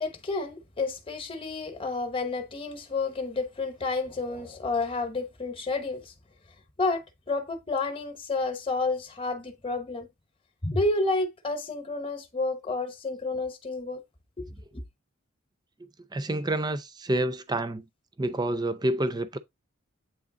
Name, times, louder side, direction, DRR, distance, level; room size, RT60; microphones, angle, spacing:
voice 1, 0.0-6.1 6.8-10.1 10.6-14.0 14.4-14.8, left 3 dB, 25° left, 1.0 m, -30 dB
voice 2, 16.1-17.8 18.2-19.4, right 1 dB, 20° right, 0.5 m, -28 dB
8.4 x 3.3 x 3.8 m
head